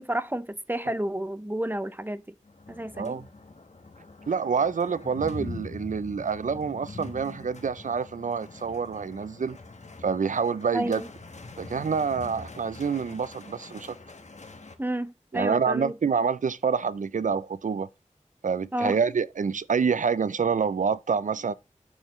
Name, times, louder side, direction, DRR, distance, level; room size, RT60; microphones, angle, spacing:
voice 1, 0.0-2.2 2.7-3.2 10.7-11.1 14.8-15.9 18.7-18.9, right 1 dB, 15° right, 0.6 m, -30 dB
sound 1, 2.4-14.7, left 3 dB, 60° left, 1.1 m, -43 dB
voice 2, 3.0-3.3 4.3-9.6 10.0-11.0 11.6-14.0 15.3-17.9 18.4-21.5, right 6 dB, 80° right, 0.4 m, -27 dB
8.8 x 6.6 x 3.0 m
wide cardioid pair, 55°, 13 cm